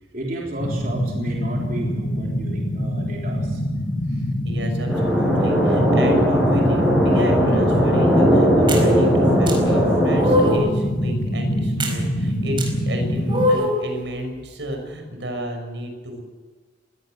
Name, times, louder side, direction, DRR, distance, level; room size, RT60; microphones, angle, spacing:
voice 1, 0.1-3.6, right 1 dB, 45° right, -2 dB, 3.7 m, -32 dB
sound 1, 0.6-13.5, equal, 45° left, 5.5 m, -24 dB
voice 2, 4.1-16.2, equal, 70° right, 4 dB, 6.1 m, -33 dB
sound 2, 4.9-10.5, equal, ahead, 6.1 m, -18 dB
sound 3, 8.7-8.9 9.5-9.6 10.2-10.7 11.8-12.0 12.6-12.7 13.3-13.8, left 1 dB, 25° right, 4.6 m, -21 dB
21.5 x 17.0 x 7.8 m, 1.4 s
head